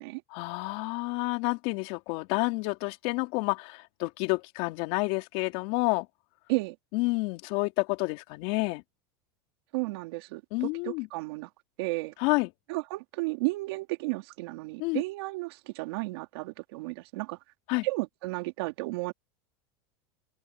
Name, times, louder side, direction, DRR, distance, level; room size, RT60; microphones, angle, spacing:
voice 1, 0.3-6.1 6.9-8.8 10.5-11.1 12.2-12.5 14.8-15.0 17.7-17.9, left 26 dB, 60° left, 3.7 m, -29 dB
voice 2, 9.7-11.5 11.8-12.1 12.7-17.4 17.8-19.1, right 23 dB, 70° right, 3.3 m, -33 dB
open air
supercardioid pair, 120°, 13 cm